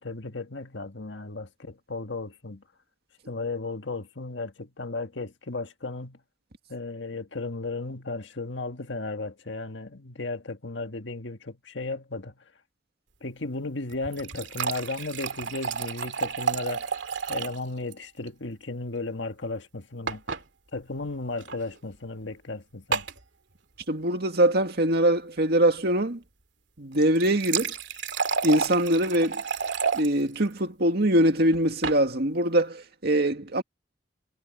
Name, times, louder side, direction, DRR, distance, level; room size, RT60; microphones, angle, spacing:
voice 1, 0.0-2.6 3.3-6.2 6.7-12.3 13.2-16.9 17.3-20.2 20.7-23.1, left 3 dB, 80° left, 1.6 m, -35 dB
sound 1, 13.9-17.6 17.9-18.0 18.3-18.4 20.1-20.4 21.4-21.6 22.9-23.2 26.9-30.1 31.5-32.0, right 6 dB, 80° right, 2.5 m, -30 dB
voice 2, 23.9-26.2 26.8-27.7 28.4-29.4 29.9-33.6, right 1 dB, 60° right, 2.2 m, -23 dB
head